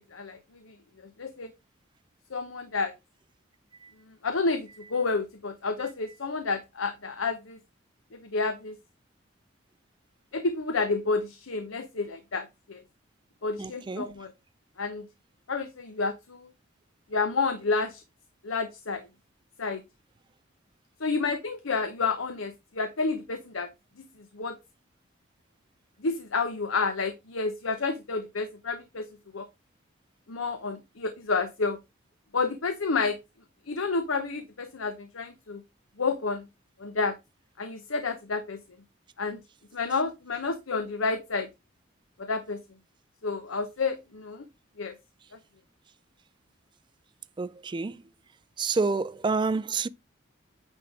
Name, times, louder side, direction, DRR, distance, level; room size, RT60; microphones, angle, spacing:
voice 1, 1.2-1.5 2.3-2.9 4.2-7.6 8.1-8.8 10.3-12.8 13.4-14.3 14.8-15.1 15.5-16.5 17.1-18.0 18.4-19.1 19.6-19.8 21.0-23.7 24.3-24.6 26.0-29.1 29.3-29.5 30.3-31.8 32.3-33.2 33.7-35.6 36.0-36.5 36.8-37.2 37.6-38.6 39.2-39.4 39.7-41.5 42.2-42.6 43.2-44.4 44.8-44.9, left 4 dB, 80° left, 0.9 m, -30 dB
voice 2, 13.6-14.1 47.4-48.0 48.6-49.9, right 4 dB, 25° right, 0.3 m, -28 dB
9.2 x 3.6 x 4.8 m
head